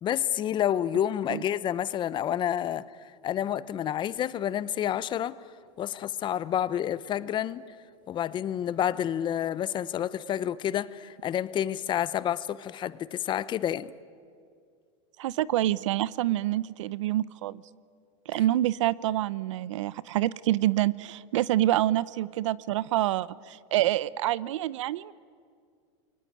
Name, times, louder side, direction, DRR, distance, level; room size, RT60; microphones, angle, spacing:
voice 1, 0.0-2.9 3.2-5.4 5.8-7.6 8.1-13.9, left 10 dB, 30° left, 0.8 m, -29 dB
voice 2, 15.2-17.6 18.3-25.1, right 14 dB, 75° right, 0.7 m, -27 dB
29.0 x 23.0 x 8.9 m
supercardioid pair, 125°, 16 cm